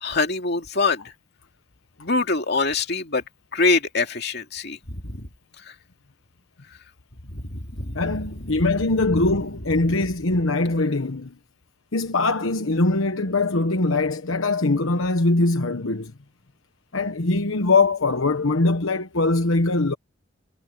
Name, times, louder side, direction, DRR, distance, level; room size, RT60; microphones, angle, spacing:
voice 1, 0.0-1.1 2.0-3.2 3.5-5.2 5.7-5.8 7.2-8.0 8.4-8.5, left 3 dB, 50° left, 2.7 m, -24 dB
voice 2, 7.9-11.3 11.9-16.1 16.9-19.9, left 2 dB, 75° left, 1.2 m, -22 dB
head